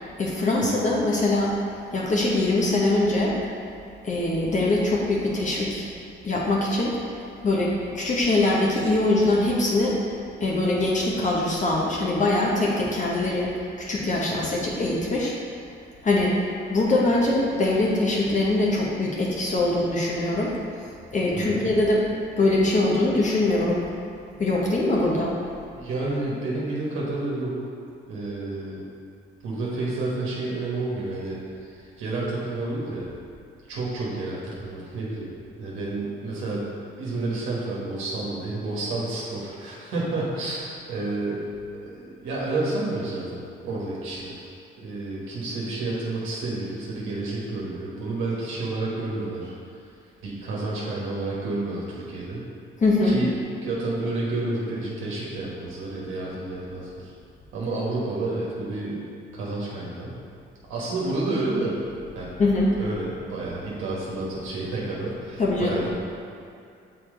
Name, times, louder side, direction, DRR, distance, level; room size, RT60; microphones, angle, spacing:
voice 1, 0.0-1.6 1.9-3.4 4.0-5.9 6.2-7.0 7.4-10.0 10.4-13.5 13.9-15.3 16.0-20.5 21.1-22.0 22.4-23.9 24.4-25.3 52.8-53.1 62.4-62.7 65.4-65.8, left 2 dB, 40° left, -4 dB, 1.1 m, -22 dB
voice 2, 21.3-21.6 25.7-27.6 28.1-28.8 29.4-33.1 33.7-35.3 35.6-41.4 41.8-49.5 50.2-52.5 53.0-57.1 57.5-59.0 59.3-60.2 60.6-61.8 62.1-62.3 62.8-65.9, right 2 dB, 90° right, -6 dB, 1.5 m, -30 dB
6.3 x 4.4 x 3.8 m, 2.4 s
cardioid pair, 90°, 20 cm